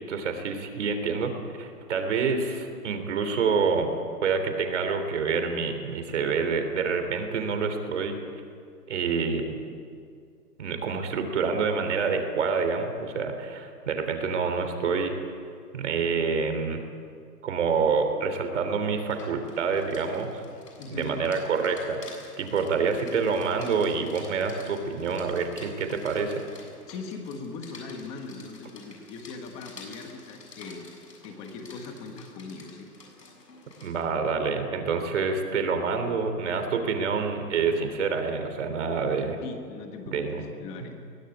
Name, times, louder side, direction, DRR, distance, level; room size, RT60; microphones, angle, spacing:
voice 1, 0.1-1.3 1.6-4.0 4.2-8.2 8.9-9.6 10.6-15.1 15.7-16.8 17.4-20.4 20.9-26.4 33.8-39.4 40.1-40.5, right 5 dB, 45° right, 7 dB, 3.5 m, -27 dB
Rain, 18.9-34.0, left 3 dB, 80° left, 7.6 m, -50 dB
voice 2, 20.8-21.2 26.9-30.9 31.2-32.9 39.4-41.0, left 4 dB, 10° left, 5 dB, 1.4 m, -40 dB
22.5 x 18.0 x 9.6 m, 2.3 s
hypercardioid pair, 165°, 48 cm